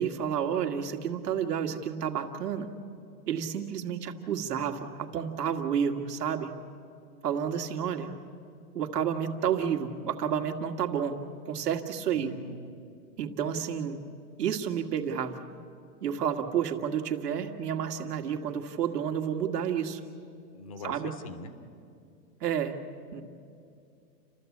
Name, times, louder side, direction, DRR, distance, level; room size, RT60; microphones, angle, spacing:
voice 1, 0.0-2.7 3.3-6.5 7.2-8.1 8.7-11.2 11.5-12.3 13.2-14.0 14.4-15.5 16.0-20.0 20.8-21.1 22.4-22.8 23.1-23.2, right 8 dB, 70° right, 5 dB, 2.0 m, -30 dB
voice 2, 12.1-12.7 20.5-21.5, left 2 dB, 20° left, 9 dB, 0.7 m, -42 dB
30.0 x 13.0 x 8.5 m, 2.4 s
hypercardioid pair, 180°, 49 cm